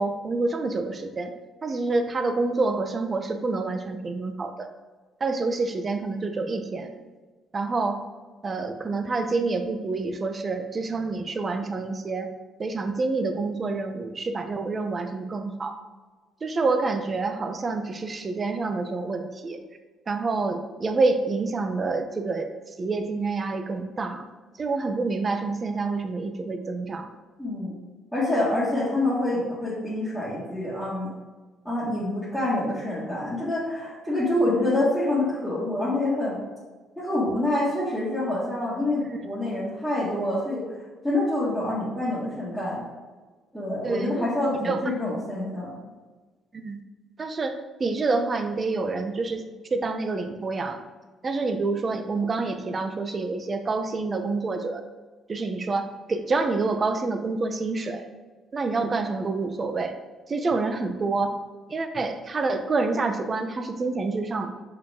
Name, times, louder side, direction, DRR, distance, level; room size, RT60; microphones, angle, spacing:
voice 1, 0.0-1.3 1.6-4.7 5.2-6.9 7.5-8.0 8.4-12.3 12.6-15.7 16.4-19.6 20.1-22.5 22.8-24.3 24.6-27.1 39.1-39.2 43.8-44.1 44.6-44.8 46.5-46.8 47.2-47.5 47.8-49.4 49.7-50.8 51.2-54.8 55.3-58.0 58.5-59.9 60.3-61.3 61.7-64.5, right 3 dB, 25° right, 7 dB, 0.5 m, -27 dB
voice 2, 27.4-27.7 28.1-31.1 31.6-36.4 37.0-40.8 41.0-42.8 43.5-45.8, left 1 dB, 5° right, -11 dB, 1.6 m, -26 dB
6.5 x 4.7 x 3.6 m, 1.3 s
cardioid pair, 150°, 0 cm